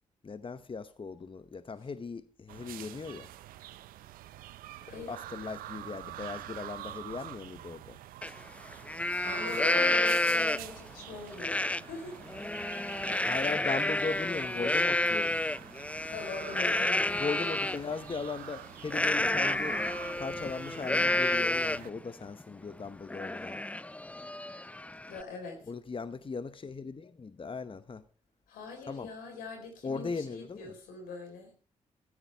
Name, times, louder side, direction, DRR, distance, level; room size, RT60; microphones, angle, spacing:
voice 1, 0.2-3.3 5.1-8.0 13.2-15.4 17.2-19.8 20.2-23.6 25.7-28.0 28.9-29.1 29.8-30.7, left 4 dB, 40° left, 0.9 m, -38 dB
sound 1, 2.5-21.9, right 13 dB, 85° right, 0.6 m, -46 dB
voice 2, 4.8-5.2 9.2-12.2 16.0-17.1 25.1-25.6 28.5-31.5, left 4 dB, 90° left, 4.2 m, -42 dB
Livestock farm animals working animals, 8.2-8.3 8.7-10.8 11.4-11.8 12.2-17.8 18.9-22.0 22.4-22.5 22.9-25.2, left 1 dB, 10° left, 0.5 m, -30 dB
15.0 x 13.5 x 3.5 m
supercardioid pair, 45°, 14 cm